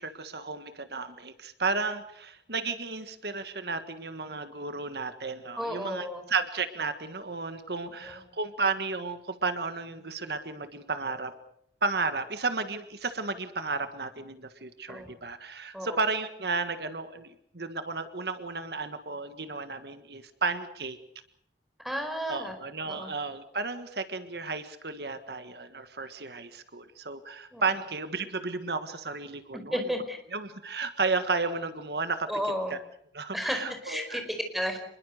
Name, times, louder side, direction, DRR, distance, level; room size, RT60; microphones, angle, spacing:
voice 1, 0.0-11.3 11.8-21.0 22.3-29.9 30.3-32.3 32.7-32.8 33.1-34.2, right 4 dB, 65° right, 10 dB, 1.6 m, -33 dB
voice 2, 5.6-6.2 8.0-8.2 14.9-15.1 15.7-16.0 21.8-22.5 22.8-23.1 27.5-27.6 29.5-30.2 32.3-32.7 33.3-34.8, equal, ahead, 5 dB, 4.9 m, -33 dB
27.5 x 21.5 x 6.7 m, 0.70 s
head